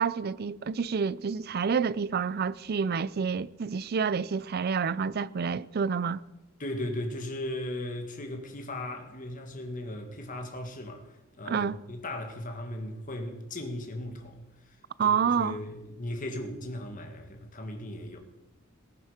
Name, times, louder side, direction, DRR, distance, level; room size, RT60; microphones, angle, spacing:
voice 1, 0.0-6.2 11.5-11.8 15.0-15.6, right 6 dB, 50° right, 0.4 m, -28 dB
voice 2, 6.6-11.1 11.4-14.5 15.0-18.2, left 1 dB, 40° left, 1.9 m, -37 dB
18.5 x 10.0 x 5.1 m
head